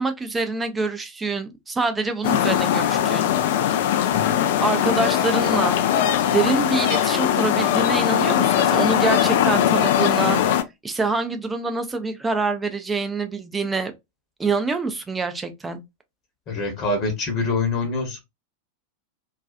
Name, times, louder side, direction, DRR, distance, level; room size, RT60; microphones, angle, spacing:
voice 1, 0.0-3.3 4.6-5.8 6.3-10.4 10.8-13.9 14.4-15.8, right 3 dB, 15° right, 0.5 m, -25 dB
sound 1, 2.2-10.6, left 10 dB, 55° left, 0.3 m, -20 dB
voice 2, 16.5-18.2, left 3 dB, 35° left, 0.9 m, -25 dB
2.4 x 2.3 x 2.4 m
figure-of-eight pair, 90°, 0 cm